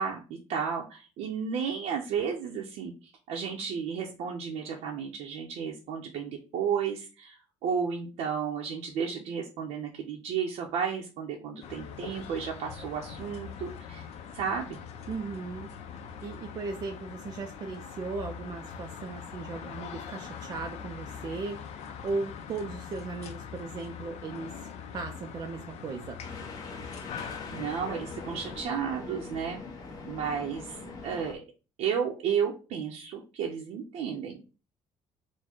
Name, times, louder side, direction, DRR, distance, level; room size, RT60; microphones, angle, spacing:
voice 1, 0.0-2.9 3.3-14.0 14.3-14.8 27.5-29.6 30.0-31.4 31.8-34.3, right 7 dB, 70° right, -1 dB, 0.7 m, -33 dB
sound 1, 11.6-28.6, left 7 dB, 65° left, 0.6 m, -43 dB
voice 2, 15.1-15.7 16.0-26.2, right 4 dB, 30° right, 3 dB, 0.4 m, -37 dB
sound 2, 26.2-31.3, left 3 dB, 30° left, 0.8 m, -42 dB
4.4 x 2.1 x 4.3 m, 0.33 s
cardioid pair, 180°, 12 cm